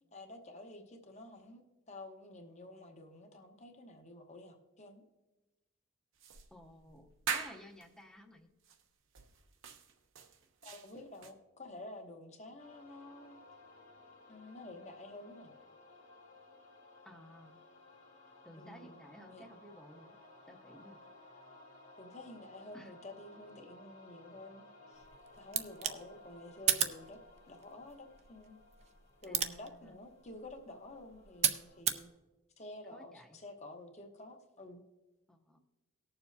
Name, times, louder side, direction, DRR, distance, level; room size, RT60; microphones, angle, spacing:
voice 1, 0.1-5.0 10.6-13.4 14.3-15.5 18.5-19.0 19.3-19.4 22.0-25.1 25.3-27.2 27.5-28.6 29.2-32.1 32.6-34.8, left 2 dB, 30° left, 1.0 m, -50 dB
sound 1, 6.2-7.9 8.6-8.8 9.1-11.3, right 6 dB, 65° right, 0.9 m, -42 dB
voice 2, 6.5-8.5 17.0-17.6 18.4-20.2 20.5-21.0 22.7-22.9 29.3-30.0 32.9-33.4 35.3-35.6, equal, 5° left, 0.8 m, -55 dB
sound 2, 12.6-31.8, left 2 dB, 70° left, 2.1 m, -58 dB
sound 3, 25.0-32.1, right 9 dB, 30° right, 0.5 m, -37 dB
19.0 x 7.0 x 2.7 m
head